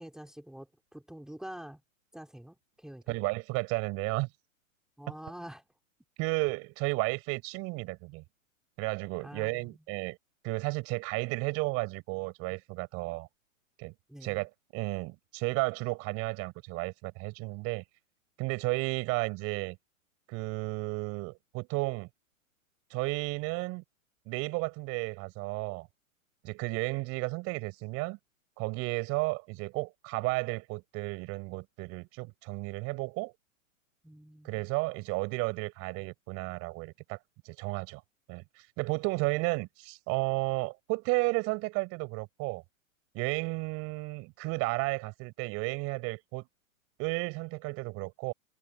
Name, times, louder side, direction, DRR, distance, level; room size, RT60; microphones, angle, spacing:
voice 1, 0.0-1.8 2.1-3.2 5.0-5.6 9.2-9.8 14.1-14.4 34.0-34.7, right 1 dB, ahead, 3.1 m, -46 dB
voice 2, 3.1-4.3 6.2-8.2 8.8-10.2 10.4-13.3 13.8-13.9 14.2-17.8 18.4-19.8 20.3-22.1 22.9-23.8 24.3-25.9 26.4-28.2 28.6-33.3 34.4-37.2 37.4-38.0 38.3-42.6 43.1-46.4 47.0-48.3, right 26 dB, 35° right, 6.1 m, -33 dB
figure-of-eight pair, 115°, 41 cm